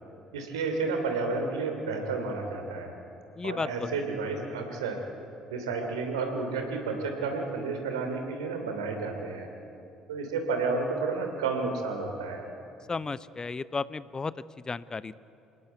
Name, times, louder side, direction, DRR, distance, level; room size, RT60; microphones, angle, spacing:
voice 1, 0.3-2.9 3.4-5.0 5.5-9.5 10.1-12.4, right 4 dB, 75° right, 4 dB, 2.9 m, -31 dB
voice 2, 3.4-3.7 12.9-14.3 14.7-15.2, left 4 dB, 25° left, 18 dB, 0.6 m, -33 dB
27.0 x 17.5 x 9.1 m, 2.8 s
figure-of-eight pair, 50°, 3 cm